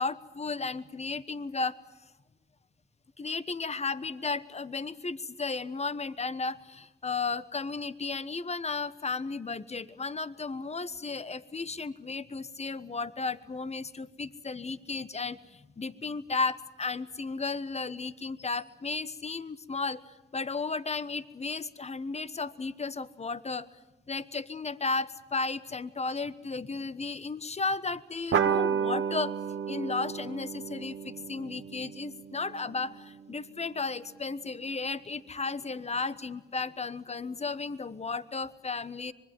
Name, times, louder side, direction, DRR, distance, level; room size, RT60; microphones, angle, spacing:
voice 1, 0.0-1.8 3.2-20.0 20.3-23.7 24.1-29.3 29.7-39.1, left 4 dB, 30° left, 15 dB, 1.1 m, -34 dB
sound 1, 28.3-33.2, right 7 dB, 70° right, 1.3 m, -32 dB
25.0 x 21.0 x 7.6 m, 1.1 s
cardioid pair, 60°, 21 cm